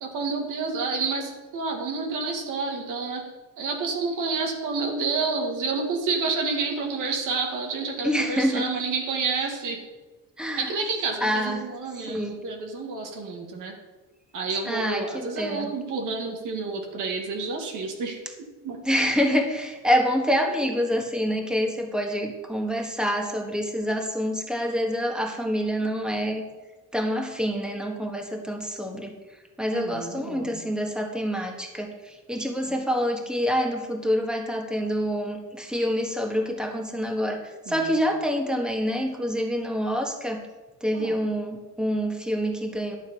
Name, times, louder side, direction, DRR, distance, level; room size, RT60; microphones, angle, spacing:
voice 1, 0.0-3.3 3.6-9.9 10.6-13.8 14.3-18.8 29.7-30.7 32.7-32.8 37.7-37.9 40.9-41.2, right 4 dB, 75° right, 2 dB, 1.9 m, -29 dB
voice 2, 8.0-8.7 10.4-10.7 11.2-11.6 12.1-12.4 14.6-15.7 18.8-26.4 26.9-29.1 29.6-37.4 37.7-40.4 40.8-43.0, equal, 5° right, 2 dB, 1.6 m, -26 dB
11.5 x 6.8 x 5.2 m, 1.2 s
cardioid pair, 120°, 31 cm